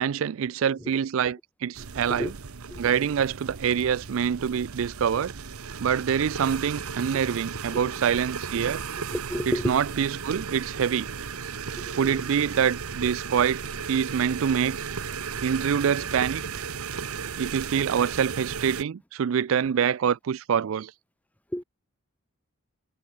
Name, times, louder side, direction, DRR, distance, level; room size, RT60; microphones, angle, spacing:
voice 1, 0.0-2.4 2.8-5.3 5.8-8.8 9.5-11.1 12.0-13.6 13.9-14.8 15.4-16.7 17.4-20.9, right 8 dB, 65° right, 0.4 m, -25 dB
sound 1, 1.7-18.8, right 6 dB, 80° right, 0.9 m, -35 dB
voice 2, 9.1-9.7 12.1-12.2 21.5-21.6, equal, 5° left, 1.3 m, -30 dB
head